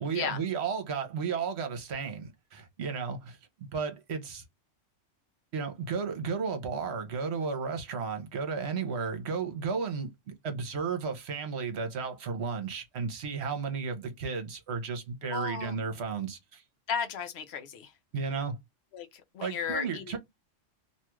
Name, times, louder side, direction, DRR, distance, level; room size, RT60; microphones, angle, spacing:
voice 1, 0.0-4.4 5.5-10.1 10.4-16.6 18.1-18.6 19.4-20.2, right 5 dB, 65° right, 1.0 m, -33 dB
voice 2, 15.3-15.8 16.9-17.9 18.9-20.2, left 6 dB, 65° left, 0.8 m, -35 dB
2.6 x 2.3 x 3.0 m
omnidirectional pair, 1.3 m